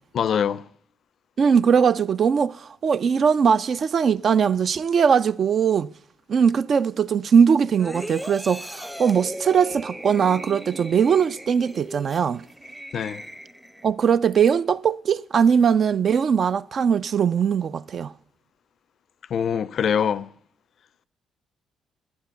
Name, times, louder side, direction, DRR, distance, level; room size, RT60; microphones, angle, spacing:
voice 1, 0.1-0.6 12.9-13.2 19.3-20.3, left 8 dB, 65° left, 0.4 m, -24 dB
voice 2, 1.4-5.9 6.3-12.4 13.8-18.1, right 7 dB, 55° right, 0.4 m, -20 dB
sound 1, 7.8-13.9 14.3-14.5, equal, 5° right, 0.7 m, -38 dB
11.5 x 9.6 x 5.6 m
cardioid pair, 70°, 0 cm